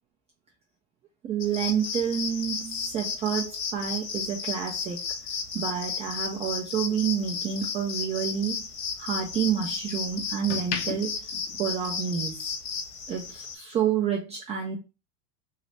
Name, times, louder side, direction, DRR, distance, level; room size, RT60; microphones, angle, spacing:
voice 1, 1.2-5.0 5.5-8.7 9.0-11.3 11.6-12.5 13.1-14.8, right 8 dB, 20° right, 0 dB, 0.3 m, -29 dB
sound 1, 1.4-13.5, left 6 dB, 70° left, 1.4 m, -34 dB
sound 2, 5.7-8.0 8.4-9.8 10.3-12.4 12.7-13.0, left 7 dB, 40° left, 0.6 m, -39 dB
3.2 x 2.9 x 2.7 m, 0.28 s
supercardioid pair, 145°, 36 cm